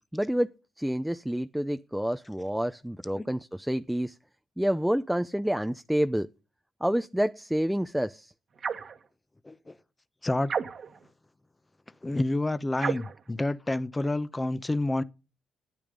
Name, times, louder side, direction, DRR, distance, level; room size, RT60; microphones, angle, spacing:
voice 1, 0.1-0.5 0.8-4.2 4.6-6.3 6.8-8.3, equal, 5° right, 0.6 m, -28 dB
sound 1, 8.6-9.0 10.5-11.0 12.8-13.2, right 6 dB, 50° right, 1.5 m, -32 dB
voice 2, 9.4-9.7 10.2-10.5 12.0-15.0, left 2 dB, 15° left, 0.9 m, -29 dB
12.5 x 9.1 x 5.2 m
cardioid pair, 90°, 0 cm